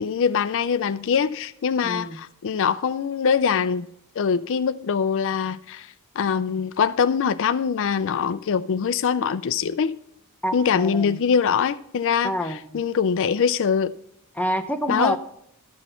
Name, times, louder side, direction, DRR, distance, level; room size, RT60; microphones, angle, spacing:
voice 1, 0.0-3.9 4.2-9.9 10.5-12.3 12.7-13.9 14.9-15.2, left 6 dB, 60° left, 0.4 m, -23 dB
voice 2, 1.8-2.2 10.4-11.2 12.2-12.8 14.4-15.2, equal, 5° left, 0.8 m, -27 dB
13.0 x 6.2 x 5.6 m
head